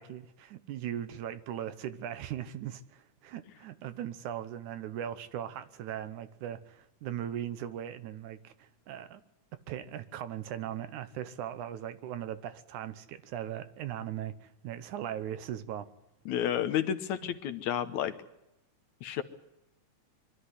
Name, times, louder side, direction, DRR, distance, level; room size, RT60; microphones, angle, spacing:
voice 1, 0.0-9.2 9.7-15.9, right 10 dB, 75° right, 12 dB, 2.3 m, -39 dB
voice 2, 16.3-18.2 19.0-19.2, left 10 dB, 70° left, 11 dB, 2.2 m, -31 dB
23.5 x 13.0 x 9.7 m, 0.90 s
omnidirectional pair, 3.7 m